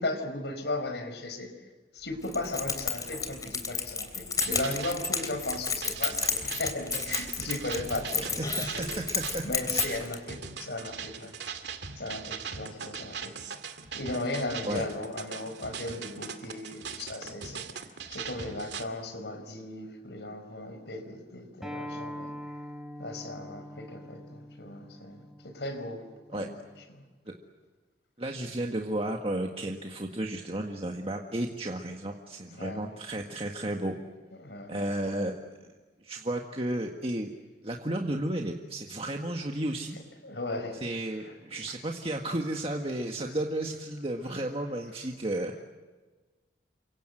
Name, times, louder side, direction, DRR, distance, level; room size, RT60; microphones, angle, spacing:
voice 1, 0.0-1.5 1.9-9.0 9.4-11.4 12.0-13.4 13.9-17.6 18.1-22.3 23.0-25.2 25.4-26.1 26.3-26.5 26.9-27.0 32.5-32.9 34.4-34.9 40.2-40.8 41.2-41.3 43.2-43.3, left 2 dB, 75° left, 8 dB, 5.0 m, -36 dB
Keys jangling, 2.2-10.2, left 5 dB, 20° left, 3.1 m, -32 dB
sound 1, 4.4-18.8, right 6 dB, 75° right, 2.3 m, -40 dB
voice 2, 8.2-9.4 9.7-10.0 14.7-14.9 26.3-26.5 28.2-34.0 34.7-35.6 36.0-37.3 37.6-40.0 40.8-45.6, right 1 dB, 30° right, 2 dB, 1.7 m, -33 dB
Acoustic guitar, 21.6-26.8, left 1 dB, ahead, 3.6 m, -43 dB
29.5 x 24.5 x 7.9 m, 1.3 s
head